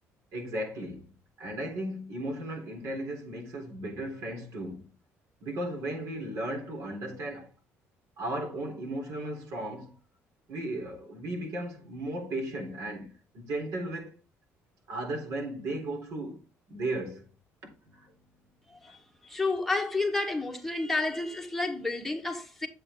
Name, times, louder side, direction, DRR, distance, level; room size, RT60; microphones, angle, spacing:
voice 1, 0.3-1.1 1.4-4.9 5.4-7.5 8.2-9.9 10.5-14.2 14.9-16.4 16.7-17.3 17.6-18.1 18.9-19.0, right 1 dB, 70° right, 3.8 m, -35 dB
voice 2, 18.7-19.0 19.2-22.7, left 3 dB, 5° left, 1.5 m, -30 dB
9.2 x 7.7 x 3.8 m
cardioid pair, 140°, 5 cm